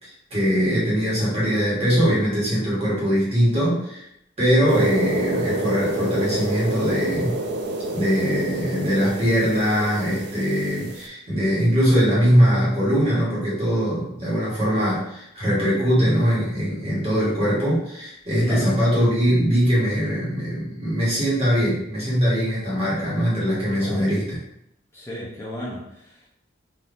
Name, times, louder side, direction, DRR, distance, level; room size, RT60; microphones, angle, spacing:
voice 1, 0.0-4.0 4.4-7.4 7.9-24.4, equal, 30° right, -7 dB, 1.3 m, -21 dB
sound 1, 4.7-11.0, right 2 dB, 55° right, 0.4 m, -28 dB
voice 2, 23.8-24.1 24.9-26.3, left 1 dB, 15° left, -8 dB, 0.5 m, -34 dB
3.4 x 2.6 x 2.6 m, 0.78 s
head